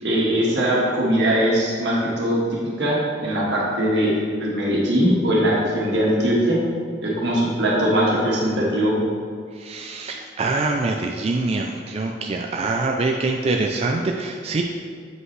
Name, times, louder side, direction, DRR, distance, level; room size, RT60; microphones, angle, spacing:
voice 1, 0.0-4.1 4.4-6.6 7.0-9.0, equal, 80° right, -5 dB, 1.6 m, -21 dB
voice 2, 9.6-14.6, right 3 dB, 35° right, 2 dB, 0.3 m, -24 dB
7.9 x 5.2 x 3.2 m, 2.1 s
head